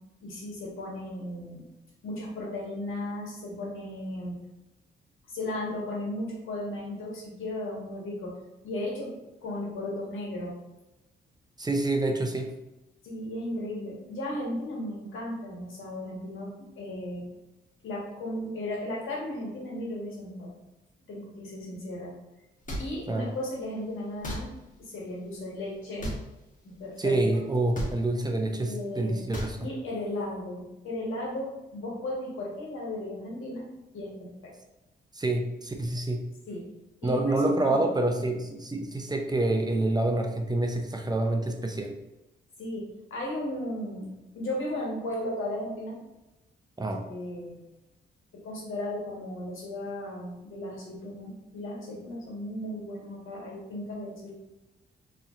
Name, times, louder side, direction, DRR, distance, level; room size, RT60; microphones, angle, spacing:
voice 1, 0.2-1.7 2.0-4.4 5.3-8.3 8.6-9.1 9.4-10.6 13.0-17.3 17.8-20.5 21.1-22.1 22.8-24.5 24.8-26.1 26.6-27.4 28.6-29.2 29.6-33.7 33.9-34.5 36.5-36.7 37.0-37.2 37.6-37.8 42.6-44.1 44.3-46.0 47.0-47.6 48.3-54.3, left 1 dB, 80° left, -3 dB, 1.4 m, -35 dB
voice 2, 11.6-12.5 23.1-23.3 27.0-29.7 35.1-36.2 37.0-41.9 46.8-47.0, right 2 dB, 20° right, 3 dB, 0.6 m, -27 dB
sound 1, 22.7-22.8 24.2-24.4 26.0-26.2 27.7-27.9 29.3-29.5, equal, 40° left, 1.4 m, -33 dB
4.0 x 3.1 x 2.5 m, 0.96 s
supercardioid pair, 60°, 20 cm